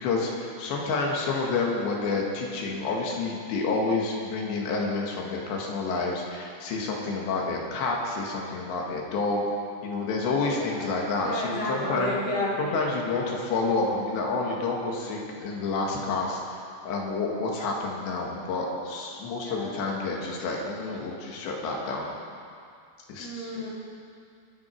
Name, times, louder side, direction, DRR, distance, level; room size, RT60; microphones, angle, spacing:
voice 1, 0.0-9.5 9.8-12.2 12.6-16.6 16.9-22.1 23.1-23.5, left 3 dB, 75° left, -1 dB, 3.8 m, -29 dB
voice 2, 10.6-10.9 11.2-12.5 19.4-19.7 23.2-23.7, left 1 dB, 45° left, -6 dB, 1.9 m, -31 dB
22.5 x 9.7 x 4.6 m, 2.4 s
omnidirectional pair, 5.4 m